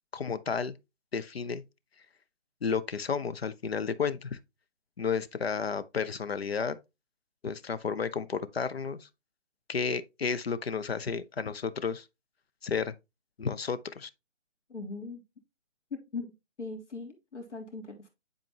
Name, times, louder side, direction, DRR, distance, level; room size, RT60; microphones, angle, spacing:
voice 1, 0.1-0.7 1.1-1.6 2.6-4.4 5.0-6.8 7.4-9.1 9.7-12.1 12.6-12.9 13.4-14.1, left 5 dB, 60° left, 0.8 m, -32 dB
voice 2, 14.7-15.2 15.9-16.3 16.6-18.1, left 3 dB, 85° left, 3.2 m, -39 dB
10.5 x 4.3 x 2.9 m
hypercardioid pair, 175°, 35 cm